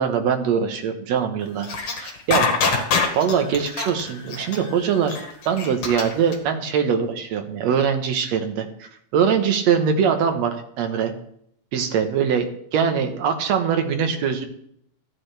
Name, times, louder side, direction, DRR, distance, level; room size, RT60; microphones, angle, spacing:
voice 1, 0.0-1.7 2.0-2.5 3.2-5.2 5.5-11.1 11.7-14.5, right 7 dB, 65° right, 6 dB, 2.3 m, -22 dB
sound 1, 1.6-6.3, left 5 dB, 55° left, 2.4 m, -24 dB
14.5 x 8.6 x 3.4 m, 0.70 s
omnidirectional pair, 3.4 m